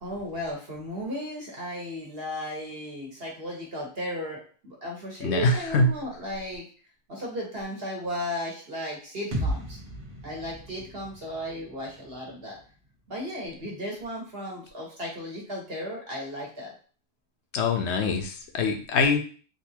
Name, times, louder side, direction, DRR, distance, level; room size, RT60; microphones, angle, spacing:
voice 1, 0.0-6.6 7.1-9.8 10.2-12.6 13.1-16.7, equal, 60° right, -2 dB, 1.4 m, -35 dB
voice 2, 5.2-5.9 17.5-19.2, left 3 dB, 80° left, 5 dB, 0.9 m, -24 dB
sound 1, 9.3-13.2, right 1 dB, 90° right, 1.3 m, -36 dB
3.8 x 2.5 x 2.8 m, 0.40 s
omnidirectional pair, 1.1 m